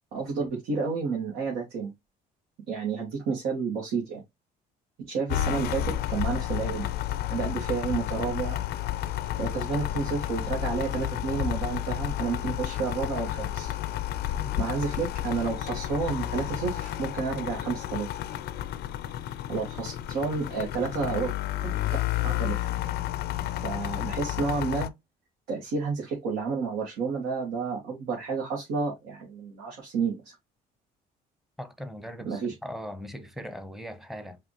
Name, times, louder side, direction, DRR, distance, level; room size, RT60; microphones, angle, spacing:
voice 1, 0.1-1.9 2.7-4.2 5.0-6.9 7.3-8.6 9.4-13.7 14.6-18.1 19.5-21.3 21.6-22.0 22.2-22.7 23.6-24.9 25.5-30.3 32.2-32.5, right 5 dB, 80° right, 1.6 m, -30 dB
sound 1, 5.3-24.9, left 13 dB, 70° left, 0.5 m, -31 dB
voice 2, 31.6-34.4, equal, ahead, 0.8 m, -39 dB
5.0 x 2.7 x 3.0 m
cardioid pair, 110°, 17 cm